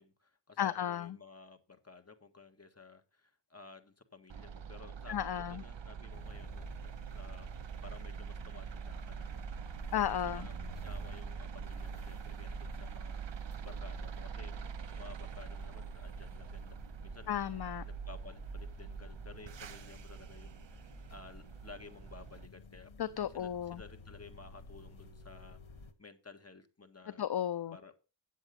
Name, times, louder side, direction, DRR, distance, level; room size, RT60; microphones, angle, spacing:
voice 1, 0.0-7.5 7.8-14.6 14.9-17.4 17.8-22.9 23.3-25.6 26.0-27.3 27.7-27.9, left 4 dB, 30° left, 7 dB, 1.5 m, -54 dB
voice 2, 0.6-1.1 5.1-5.6 9.9-10.5 17.3-17.8 23.0-23.8 27.2-27.8, left 10 dB, 55° left, 16 dB, 0.5 m, -34 dB
sound 1, 4.3-22.5, right 6 dB, 65° right, 0.7 m, -44 dB
sound 2, 6.1-25.9, left 3 dB, 80° left, 1.2 m, -53 dB
9.0 x 7.6 x 5.2 m, 0.31 s
wide cardioid pair, 50°, 47 cm